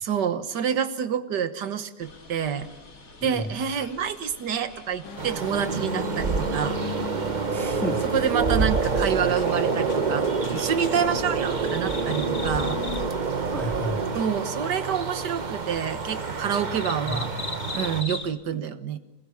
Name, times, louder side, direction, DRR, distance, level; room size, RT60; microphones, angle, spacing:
voice 1, 0.0-2.7 3.2-6.8 8.1-12.8 14.1-17.3 17.7-19.0, right 8 dB, 80° right, 11 dB, 1.9 m, -28 dB
sound 1, 2.0-18.3, left 3 dB, 50° left, 2.7 m, -43 dB
voice 2, 3.2-3.5 7.5-8.0 13.5-14.1 17.1-17.6, equal, ahead, 3 dB, 1.9 m, -32 dB
sound 2, 5.0-13.1, left 6 dB, 85° left, 2.5 m, -38 dB
sound 3, 5.2-18.0, right 5 dB, 35° right, 0.9 m, -27 dB
26.5 x 20.5 x 7.1 m, 0.93 s
omnidirectional pair, 1.8 m